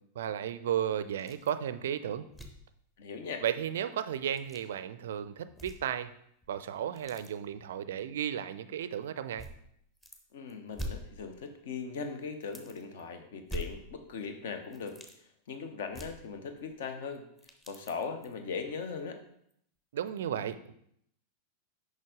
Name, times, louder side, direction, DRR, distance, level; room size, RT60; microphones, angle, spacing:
voice 1, 0.2-2.3 3.4-6.1 6.5-9.5 19.9-20.7, right 9 dB, 60° right, 13 dB, 0.4 m, -34 dB
sound 1, 1.2-1.6 1.9-2.0 2.3-2.7 4.2-4.6 5.5-6.1 6.4-7.3 8.2-8.3 9.4-10.2 10.5-11.7 12.0-12.1 12.4-13.0 13.4-14.3 14.6-15.2 15.9-16.8 17.2-18.4 18.9-19.0 19.5-19.6, equal, 10° left, 0.9 m, -44 dB
voice 2, 3.0-3.4 10.3-15.0 15.5-17.2 17.7-19.2, left 5 dB, 55° left, 7 dB, 0.8 m, -39 dB
6.5 x 5.2 x 3.7 m, 0.71 s
figure-of-eight pair, 90°, 0 cm